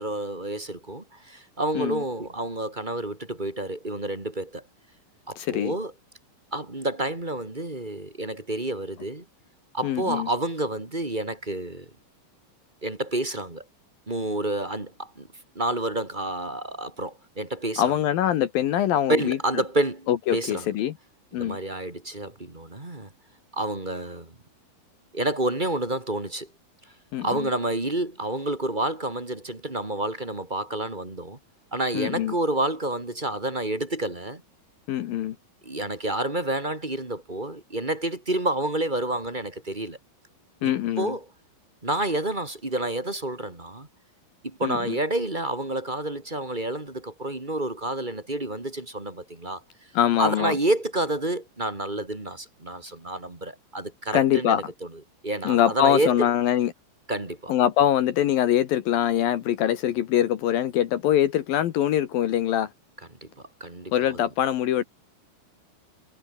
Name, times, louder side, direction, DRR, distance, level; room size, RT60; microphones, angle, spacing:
voice 1, 0.0-4.6 5.3-5.9 6.5-9.2 9.7-11.9 12.8-13.6 14.1-15.3 15.5-18.0 19.1-20.7 21.3-23.1 23.5-24.3 25.1-26.5 27.2-31.4 31.7-34.4 35.6-40.0 40.6-41.3 41.8-43.9 44.4-49.6 50.2-54.6 55.2-56.3 57.1-57.5 63.2-63.3 63.6-64.3, right 1 dB, 15° right, 2.2 m, -29 dB
voice 2, 5.4-5.7 9.8-10.3 17.8-19.4 20.1-20.9 21.3-21.6 27.1-27.5 31.9-32.3 34.9-35.4 40.6-41.2 44.6-45.0 49.9-50.6 54.1-54.6 55.4-56.7 57.5-62.7 63.9-64.8, left 11 dB, 65° left, 2.4 m, -23 dB
omnidirectional pair, 5.3 m